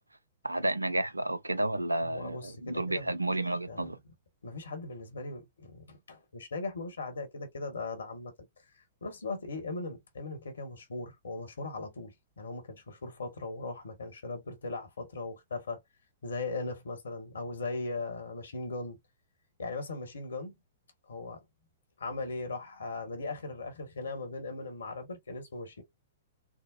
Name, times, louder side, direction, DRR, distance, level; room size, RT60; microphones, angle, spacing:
voice 1, 0.4-4.0, right 1 dB, 80° right, 0.4 m, -31 dB
voice 2, 2.0-3.9 4.4-8.3 8.7-15.8 16.2-19.0 19.6-20.5 21.1-21.4 22.0-25.8, left 3 dB, 65° left, 1.1 m, -39 dB
3.8 x 2.0 x 2.3 m
figure-of-eight pair, 110°, 0 cm